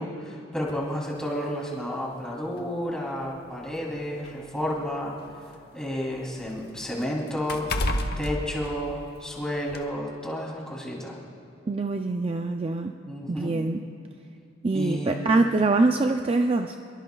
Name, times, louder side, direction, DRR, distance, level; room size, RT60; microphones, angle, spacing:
voice 1, 0.0-5.2 5.7-11.2 13.1-13.6 14.7-15.3, equal, 5° left, -4 dB, 3.0 m, -31 dB
sound 1, 0.7-0.9 1.9-2.0 2.5-2.6 3.5-5.5 5.9-9.3 9.7-9.9, left 1 dB, 55° left, 1.0 m, -32 dB
voice 2, 11.7-12.9 13.3-13.8 14.6-16.8, right 3 dB, 30° right, 5 dB, 0.4 m, -24 dB
23.5 x 22.5 x 2.3 m, 2.8 s
head